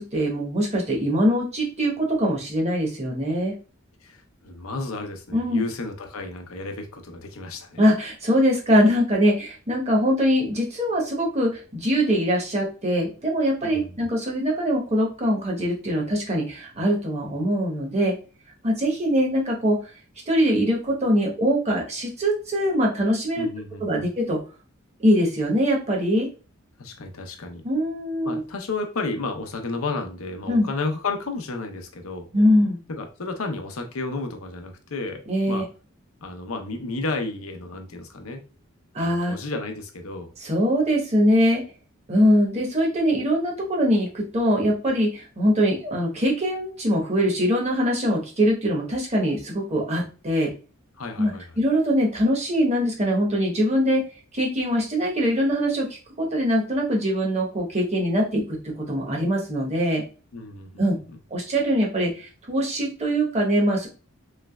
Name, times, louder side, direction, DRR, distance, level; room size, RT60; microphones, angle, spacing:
voice 1, 0.0-3.5 5.3-5.6 7.8-18.1 18.6-19.8 20.3-23.5 23.8-24.4 25.0-26.3 27.6-28.4 30.5-30.6 32.3-32.8 35.3-35.6 38.9-39.3 40.4-41.6 42.1-50.5 51.2-51.3 51.6-54.0 54.3-55.9 56.2-58.4 58.9-60.0 60.8-61.0 61.3-63.9, equal, 30° right, -1 dB, 1.0 m, -22 dB
voice 2, 4.0-7.8 13.6-14.0 23.3-24.1 26.8-27.6 28.2-32.3 32.9-35.7 36.2-38.4 39.0-40.3 51.0-51.6 60.3-60.8 61.1-61.2, left 3 dB, 80° left, 5 dB, 0.7 m, -32 dB
3.3 x 3.1 x 2.2 m, 0.35 s
head